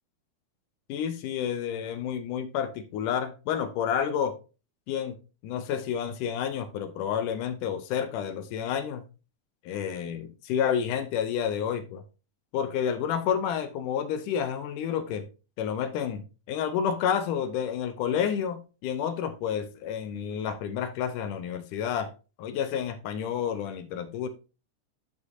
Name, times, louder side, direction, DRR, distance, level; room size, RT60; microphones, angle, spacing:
voice 1, 0.9-4.4 4.9-5.1 5.4-9.0 9.7-12.0 12.5-15.3 15.6-16.2 16.5-22.1 22.4-24.3, left 8 dB, 80° left, 2.1 m, -30 dB
11.5 x 5.3 x 2.7 m
omnidirectional pair, 3.9 m